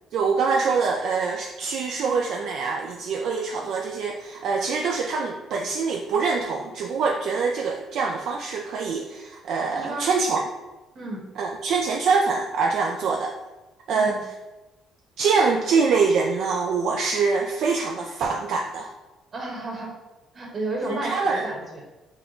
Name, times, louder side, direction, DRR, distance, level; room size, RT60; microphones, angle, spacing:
voice 1, 0.1-10.4 11.4-13.3 13.9-14.2 15.2-18.9 20.9-21.5, right 4 dB, 70° right, 0 dB, 0.3 m, -24 dB
voice 2, 9.7-10.0 10.9-11.2 13.9-14.2 19.3-19.9 20.3-21.2 21.4-21.8, right 2 dB, 45° right, -2 dB, 1.2 m, -32 dB
3.6 x 2.3 x 3.8 m, 1.1 s
supercardioid pair, 80°, 0 cm